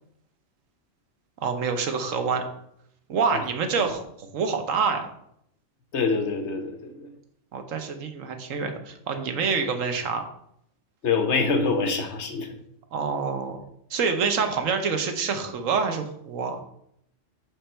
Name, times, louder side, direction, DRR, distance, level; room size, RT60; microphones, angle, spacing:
voice 1, 1.4-2.4 3.1-5.1 7.5-10.2 12.9-13.6 13.9-16.6, right 5 dB, 85° right, 6 dB, 1.3 m, -27 dB
voice 2, 5.9-7.1 11.0-12.5, left 4 dB, 65° left, 5 dB, 1.2 m, -25 dB
5.8 x 5.1 x 4.4 m, 0.73 s
omnidirectional pair, 1.3 m